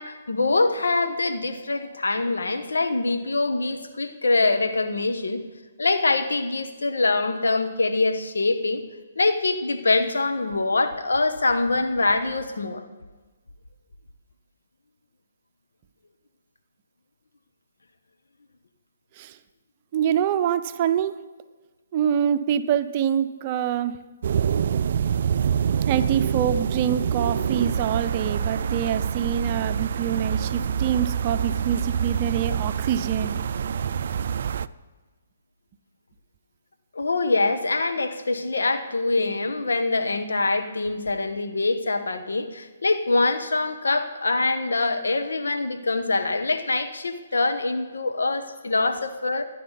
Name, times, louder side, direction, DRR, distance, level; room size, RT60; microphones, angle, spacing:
voice 1, 0.0-5.4 5.8-8.8 9.1-12.8 36.9-49.4, left 3 dB, 85° left, 7 dB, 1.4 m, -24 dB
voice 2, 19.9-21.2 21.9-24.0 25.8-33.4, right 9 dB, 35° right, 10 dB, 0.7 m, -25 dB
sound 1, 24.2-34.7, right 8 dB, 60° right, 0.4 m, -26 dB
25.5 x 10.0 x 4.2 m, 1.2 s
hypercardioid pair, 145°, 0 cm